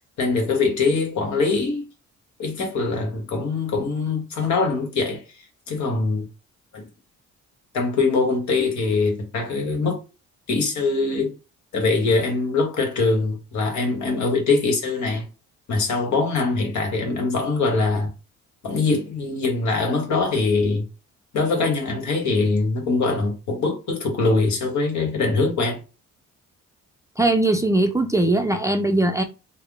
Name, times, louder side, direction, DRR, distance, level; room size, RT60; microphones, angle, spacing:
voice 1, 0.2-1.9 2.4-5.2 5.7-6.3 6.7-6.9 7.7-10.0 10.5-11.3 11.7-15.3 15.7-18.1 18.6-20.8 21.3-25.8, left 3 dB, 70° left, 1.3 m, -22 dB
voice 2, 27.2-29.2, right 2 dB, 10° right, 0.4 m, -20 dB
3.6 x 2.1 x 3.5 m
cardioid pair, 90°, 30 cm